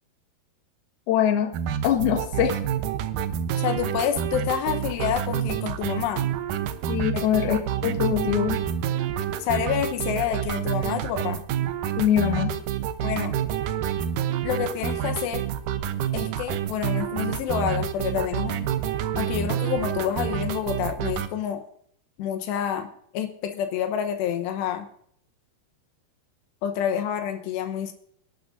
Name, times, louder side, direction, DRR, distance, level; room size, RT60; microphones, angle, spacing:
voice 1, 1.1-1.5 1.8-2.6 6.9-8.6 12.0-12.5, left 10 dB, 70° left, 3 dB, 3.2 m, -23 dB
sound 1, 1.5-21.3, right 9 dB, 80° right, 1.9 m, -28 dB
voice 2, 3.6-6.3 7.1-7.2 9.4-11.4 13.0-13.4 14.4-15.5 16.1-18.7 19.2-21.6 22.2-22.9 23.1-24.9 26.6-27.9, left 9 dB, 90° left, 5 dB, 3.1 m, -28 dB
26.0 x 11.5 x 2.6 m, 0.65 s
omnidirectional pair, 4.8 m